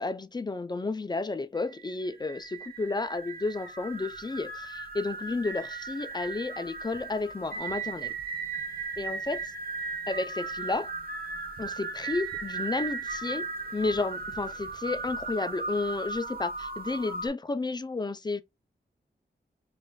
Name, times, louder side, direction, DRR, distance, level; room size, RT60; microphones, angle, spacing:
voice 1, 0.0-8.1 9.0-9.5 10.1-10.9 11.6-13.5 13.7-18.4, left 3 dB, 25° left, 0.4 m, -32 dB
sound 1, 1.6-17.3, right 4 dB, 50° right, 0.8 m, -37 dB
5.3 x 2.5 x 2.2 m
wide cardioid pair, 90°, 19 cm